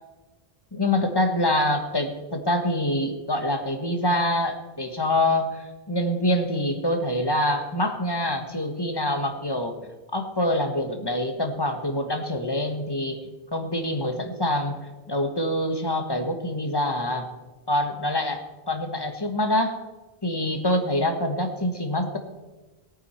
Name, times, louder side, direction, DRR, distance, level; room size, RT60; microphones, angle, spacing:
voice 1, 0.7-9.8 10.1-13.2 13.5-14.8 15.1-17.3 17.7-19.8 20.2-22.2, left 1 dB, 25° left, 5 dB, 1.4 m, -25 dB
18.0 x 9.2 x 4.4 m, 1.2 s
omnidirectional pair, 1.1 m